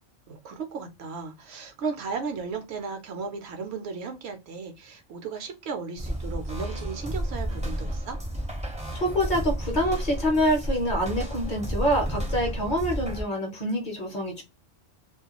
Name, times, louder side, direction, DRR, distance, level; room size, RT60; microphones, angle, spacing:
voice 1, 0.3-8.2, right 5 dB, 70° right, 0.8 m, -35 dB
sound 1, 6.0-13.2, equal, 10° right, 0.4 m, -32 dB
voice 2, 8.9-14.4, equal, 50° left, 0.7 m, -26 dB
2.3 x 2.2 x 2.9 m
omnidirectional pair, 1.2 m